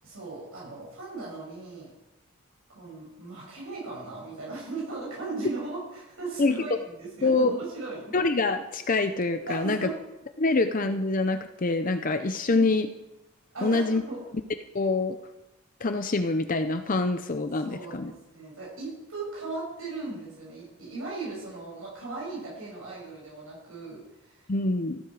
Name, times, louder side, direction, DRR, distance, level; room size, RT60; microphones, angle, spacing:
voice 1, 0.0-1.9 2.7-8.1 9.5-10.0 12.5-12.7 13.5-14.2 17.6-24.5, right 3 dB, 90° right, -5 dB, 6.9 m, -38 dB
voice 2, 7.2-7.5 8.1-9.9 10.4-12.9 13.6-14.0 14.7-15.2 15.8-18.1 24.5-25.0, left 3 dB, 40° left, 8 dB, 0.6 m, -25 dB
15.0 x 14.0 x 4.8 m, 0.98 s
head